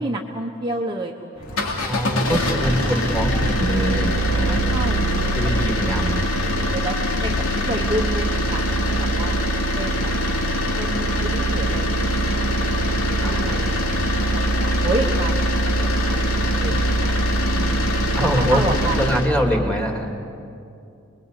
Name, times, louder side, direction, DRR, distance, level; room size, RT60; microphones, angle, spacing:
voice 1, 0.0-1.8 2.3-2.4 2.8-3.0 4.7-6.1 6.4-6.9 7.2-9.4 9.7-10.1 10.8-12.6 12.9-13.8 14.3-17.2 17.5-17.9 18.2-19.0 19.5-19.7, right 2 dB, 20° right, 0 dB, 1.1 m, -30 dB
sound 1, 1.4-19.3, equal, 85° left, 2.9 m, -22 dB
voice 2, 1.9-4.6 5.4-6.2 13.2-13.7 18.1-18.6 19.0-20.1, equal, 5° left, 2 dB, 2.7 m, -24 dB
28.5 x 22.0 x 8.4 m, 2.6 s
head